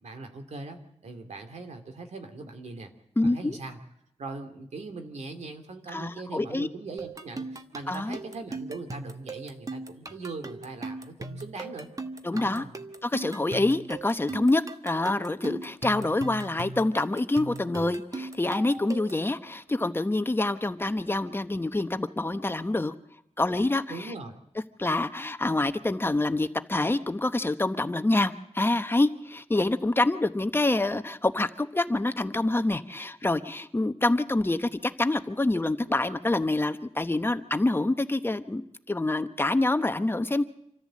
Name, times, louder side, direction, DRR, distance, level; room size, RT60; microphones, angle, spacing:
voice 1, 0.0-2.9 3.2-3.8 4.2-11.9 12.3-12.7 23.9-24.4, right 3 dB, 85° right, 6 dB, 2.7 m, -40 dB
voice 2, 3.2-3.5 5.9-6.7 7.9-8.2 12.2-12.6 13.0-22.9 23.4-24.1 24.8-40.5, left 2 dB, 20° left, 10 dB, 0.9 m, -26 dB
sound 1, 7.0-19.3, right 3 dB, 30° right, 1.2 m, -39 dB
27.0 x 14.0 x 7.6 m, 0.78 s
wide cardioid pair, 135°, 11 cm